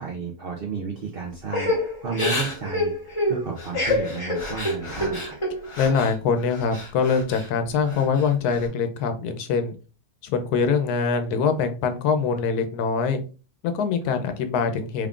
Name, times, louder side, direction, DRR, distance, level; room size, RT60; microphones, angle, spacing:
voice 1, 0.0-5.4, right 5 dB, 60° right, 0 dB, 0.6 m, -32 dB
Crying sobbing / Breathing, 1.5-6.1 6.5-7.5 7.9-8.6, left 1 dB, 25° left, 1.0 m, -27 dB
voice 2, 5.8-9.7 10.2-13.2 13.6-15.1, left 5 dB, 85° left, 8 dB, 1.2 m, -23 dB
3.6 x 3.4 x 2.4 m, 0.34 s
omnidirectional pair, 1.6 m